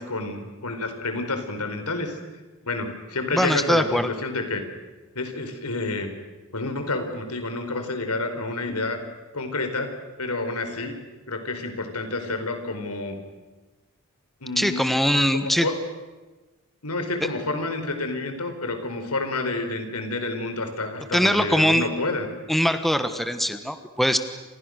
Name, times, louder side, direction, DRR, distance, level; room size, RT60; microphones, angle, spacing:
voice 1, 0.0-2.2 2.6-4.6 5.1-6.1 6.5-9.0 9.3-9.9 10.2-11.0 11.3-13.2 14.4-14.9 15.3-15.8 16.8-22.3, left 2 dB, 90° left, 7 dB, 4.4 m, -29 dB
voice 2, 3.3-4.1 14.6-15.7 21.1-21.8 22.5-24.2, equal, ahead, 9 dB, 1.4 m, -22 dB
29.5 x 27.5 x 6.6 m, 1.2 s
head